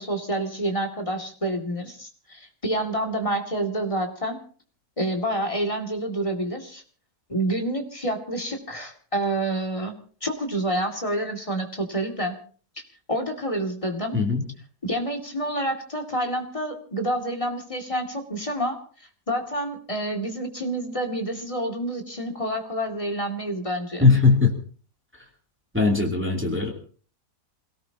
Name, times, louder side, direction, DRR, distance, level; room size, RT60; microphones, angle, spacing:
voice 1, 0.0-4.4 5.0-6.8 7.3-9.9 10.2-12.4 13.1-14.2 14.8-18.8 19.3-24.1, right 1 dB, 20° left, 3 dB, 2.4 m, -28 dB
voice 2, 14.1-14.5 24.0-24.5 25.7-26.7, left 4 dB, 5° right, 1 dB, 2.7 m, -19 dB
28.0 x 18.0 x 2.9 m, 0.42 s
omnidirectional pair, 1.8 m